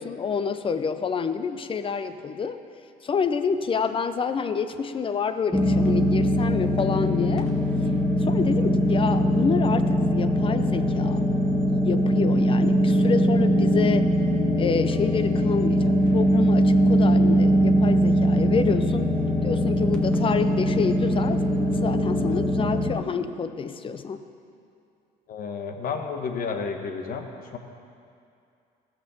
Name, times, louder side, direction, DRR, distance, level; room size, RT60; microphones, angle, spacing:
voice 1, 0.0-2.6 3.0-7.5 8.2-11.2 11.7-14.1 14.6-19.1 19.4-21.4 21.7-24.2, left 6 dB, 30° left, 10 dB, 0.6 m, -28 dB
sound 1, 5.5-22.9, equal, 5° left, 1.5 m, -21 dB
voice 2, 25.3-27.3 27.5-27.6, left 5 dB, 60° left, 4 dB, 1.2 m, -31 dB
14.5 x 6.1 x 7.0 m, 2.5 s
cardioid pair, 110°, 17 cm